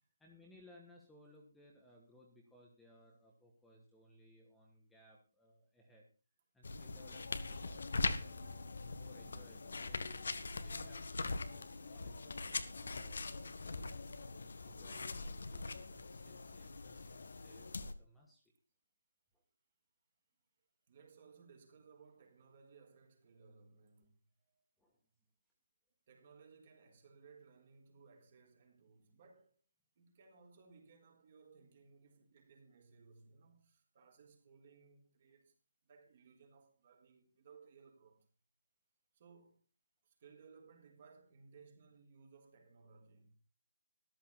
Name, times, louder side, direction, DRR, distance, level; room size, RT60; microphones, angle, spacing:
voice 1, 0.2-6.1 6.5-10.2 10.6-13.9 14.3-18.4 24.5-25.0, equal, 5° left, 2.5 m, -63 dB
sound 1, 6.6-17.9, left 3 dB, 55° left, 1.6 m, -42 dB
voice 2, 20.9-24.1 26.1-29.6 29.9-35.5 35.8-38.3 39.1-39.6 40.0-43.4, right 5 dB, 35° right, 4.7 m, -62 dB
14.0 x 14.0 x 4.3 m
figure-of-eight pair, 145°, 0 cm